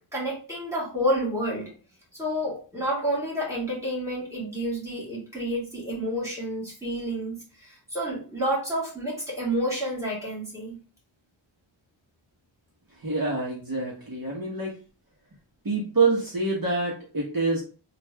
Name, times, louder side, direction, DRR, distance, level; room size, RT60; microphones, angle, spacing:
voice 1, 0.1-1.7 2.1-10.8, equal, 5° right, -6 dB, 1.9 m, -29 dB
voice 2, 13.0-14.7 15.6-17.6, right 3 dB, 45° right, -4 dB, 1.2 m, -26 dB
3.1 x 2.6 x 3.3 m, 0.37 s
wide cardioid pair, 100°, 48 cm